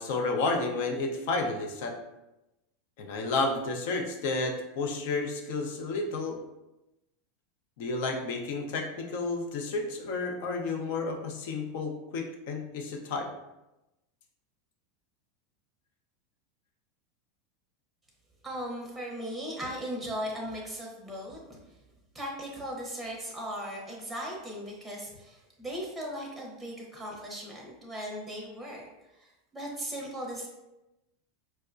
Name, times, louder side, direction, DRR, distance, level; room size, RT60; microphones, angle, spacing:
voice 1, 0.0-2.0 3.0-6.4 7.8-13.3, left 3 dB, 70° left, 2 dB, 0.6 m, -31 dB
voice 2, 18.4-21.6 22.1-28.9 29.2-30.5, equal, ahead, -2 dB, 0.7 m, -38 dB
4.5 x 2.1 x 2.5 m, 0.96 s
supercardioid pair, 130°, 0 cm